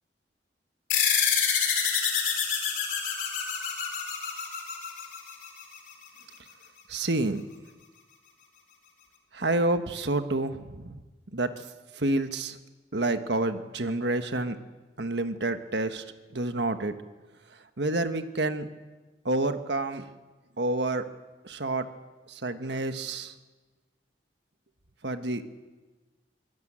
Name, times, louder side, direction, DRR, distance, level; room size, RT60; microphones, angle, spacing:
sound 1, 0.9-5.8, left 7 dB, 50° left, 4.6 m, -27 dB
voice 1, 6.9-7.4 9.3-11.0 11.3-11.6 11.9-12.6 12.9-14.6 15.0-16.0 16.3-16.9 17.8-18.7 19.2-20.1 20.6-21.1 21.4-21.9 22.3-23.3 25.0-25.6, right 2 dB, 75° right, 8 dB, 1.4 m, -28 dB
24.0 x 16.5 x 8.8 m, 1.3 s
head